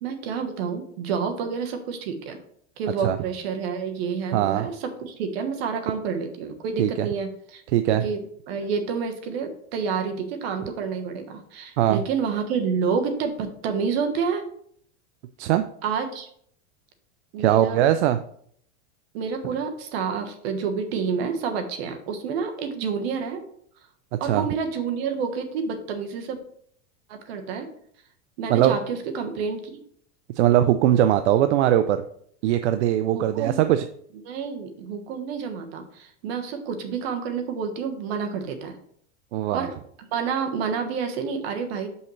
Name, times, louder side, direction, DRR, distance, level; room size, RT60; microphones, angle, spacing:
voice 1, 0.0-2.4 2.8-7.6 7.9-14.5 15.8-16.3 17.3-17.9 19.1-23.4 24.2-26.4 27.1-27.7 28.4-29.7 33.1-33.6 34.2-38.8 39.5-39.7 40.0-41.9, right 6 dB, 65° right, 6 dB, 1.3 m, -29 dB
voice 2, 4.3-4.7 6.8-7.1 7.7-8.0 11.8-12.0 15.4-15.6 17.4-18.2 24.2-24.5 28.5-28.8 30.4-32.0 32.4-33.9 39.3-39.7, right 12 dB, 85° right, 10 dB, 0.5 m, -20 dB
6.9 x 5.4 x 3.2 m, 0.65 s
supercardioid pair, 140°, 33 cm